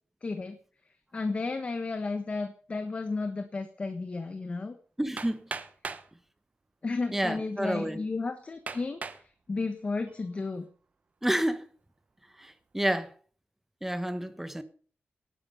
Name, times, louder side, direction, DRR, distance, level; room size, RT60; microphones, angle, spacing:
voice 1, 0.2-0.6 1.1-4.8 6.8-10.7, left 3 dB, 35° left, 1.4 m, -33 dB
voice 2, 5.0-5.5 7.1-8.0 11.2-11.6 12.3-13.1 13.8-14.6, right 1 dB, 5° right, 1.3 m, -29 dB
Hammer, 5.2-6.1 7.0-7.1 7.7-7.8 8.7-9.3 9.8-10.3, right 4 dB, 40° right, 1.2 m, -39 dB
18.5 x 10.5 x 5.6 m
wide cardioid pair, 160°, 4 cm